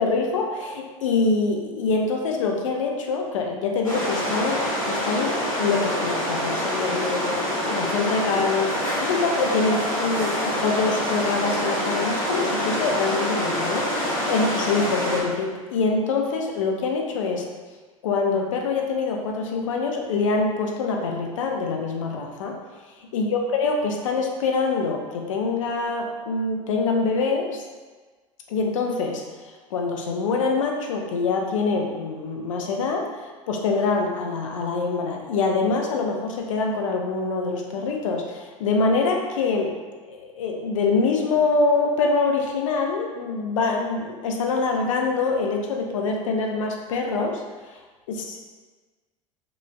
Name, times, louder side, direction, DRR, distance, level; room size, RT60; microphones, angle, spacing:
voice 1, 0.0-17.5 18.0-22.6 23.1-27.6 28.5-29.2 29.7-39.7 40.0-47.7 48.1-48.5, left 4 dB, 70° left, 1 dB, 0.6 m, -25 dB
sound 1, 3.8-15.2, equal, 85° left, 1.1 m, -26 dB
5.0 x 2.4 x 2.3 m, 1.4 s
figure-of-eight pair, 70°, 17 cm